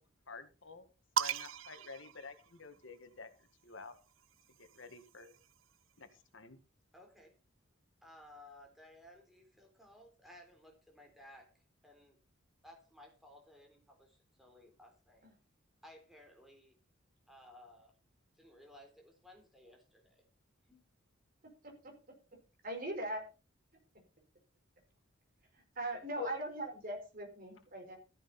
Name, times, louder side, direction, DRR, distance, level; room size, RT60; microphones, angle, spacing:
voice 1, 0.3-0.8 1.2-3.3 3.6-3.9 4.6-5.3 6.0-6.1 6.3-6.6 26.2-26.3, left 5 dB, 65° left, 9 dB, 1.8 m, -48 dB
sound 1, 1.2-3.0 4.1-5.7, right 9 dB, 70° right, 0.6 m, -39 dB
voice 2, 6.9-7.3 8.0-12.2 12.6-15.3 15.8-16.7 17.3-17.9 18.3-20.2 20.6-20.8, left 1 dB, ahead, 1 dB, 3.8 m, -58 dB
voice 3, 22.6-23.2 25.5-28.0, right 1 dB, 45° right, 3 dB, 4.8 m, -40 dB
14.0 x 10.5 x 4.3 m, 0.33 s
head